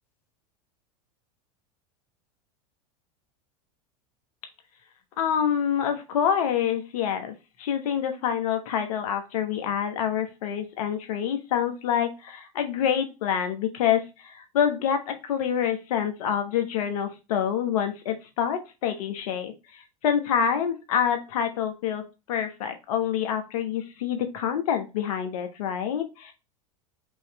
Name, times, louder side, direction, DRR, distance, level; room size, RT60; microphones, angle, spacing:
voice 1, 5.2-22.0 22.3-26.3, left 8 dB, 75° left, 6 dB, 1.3 m, -27 dB
5.4 x 3.2 x 3.0 m, 0.27 s
hypercardioid pair, 95°, 19 cm